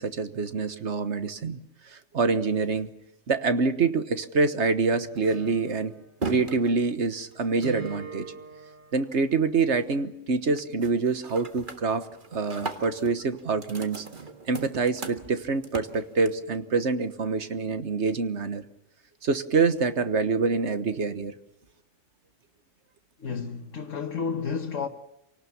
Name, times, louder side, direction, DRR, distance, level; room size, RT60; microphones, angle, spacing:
voice 1, 0.0-1.6 1.9-2.9 3.3-5.9 6.3-8.3 8.9-14.0 14.5-18.6 19.2-21.3, right 4 dB, 65° right, 1.6 m, -26 dB
sound 1, 4.9-9.4 9.7-10.2 10.5-10.9 11.2-16.6, right 4 dB, 40° right, 1.8 m, -39 dB
voice 2, 23.2-24.9, left 5 dB, 80° left, 1.6 m, -31 dB
27.0 x 19.0 x 7.2 m
omnidirectional pair, 1.3 m